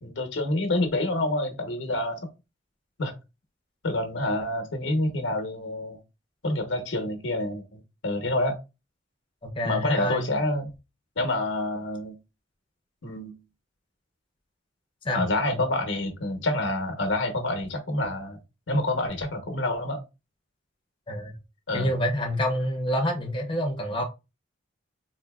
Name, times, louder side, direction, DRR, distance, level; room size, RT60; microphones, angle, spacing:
voice 1, 0.0-2.2 3.0-3.1 3.8-6.0 6.4-8.6 9.6-10.7 11.2-12.2 13.0-13.4 15.1-18.4 18.7-20.0 21.7-21.9, left 1 dB, 85° left, 0.8 m, -27 dB
voice 2, 9.4-10.2 15.0-15.6 21.1-21.3 21.7-24.0, equal, 25° left, 0.6 m, -27 dB
3.8 x 2.7 x 2.2 m
head